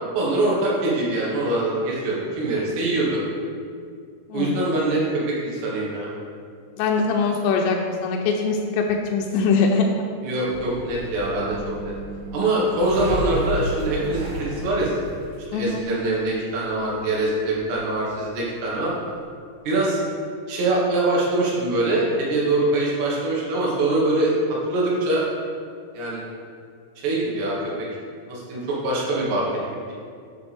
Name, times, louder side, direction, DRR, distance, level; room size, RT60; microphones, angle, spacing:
voice 1, 0.1-3.2 4.3-6.1 10.2-11.6 11.8-11.9 12.3-15.1 15.5-18.9 19.7-20.0 20.5-24.3 24.7-25.3 25.9-26.2 27.0-27.9 28.3-29.9, right 2 dB, 80° right, -5 dB, 3.7 m, -23 dB
voice 2, 6.8-9.9 15.5-15.8, left 4 dB, 90° left, 1 dB, 2.8 m, -22 dB
sound 1, 10.5-19.3, equal, 60° right, 2.4 m, -34 dB
9.9 x 5.8 x 3.5 m, 2.2 s
omnidirectional pair, 4.9 m